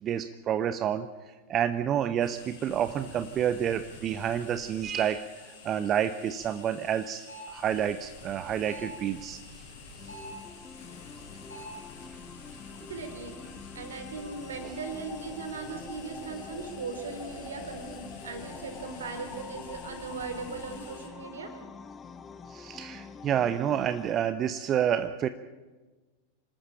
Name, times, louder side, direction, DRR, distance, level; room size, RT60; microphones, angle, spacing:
voice 1, 0.0-1.1 1.5-9.6 10.0-10.1 22.5-25.3, right 9 dB, 30° right, 11 dB, 0.8 m, -29 dB
sound 1, 2.2-21.1, left 4 dB, 55° left, 6.1 m, -49 dB
sound 2, 7.3-7.6 8.7-9.0 10.1-10.5 11.5-11.9, right 2 dB, 85° left, 7.5 m, -43 dB
sound 3, 10.0-24.1, left 5 dB, 20° left, 1.2 m, -46 dB
voice 2, 12.9-13.4 13.7-21.5, right 4 dB, 65° right, 6 dB, 4.0 m, -38 dB
26.5 x 13.0 x 8.9 m, 1.3 s
figure-of-eight pair, 90°, 0 cm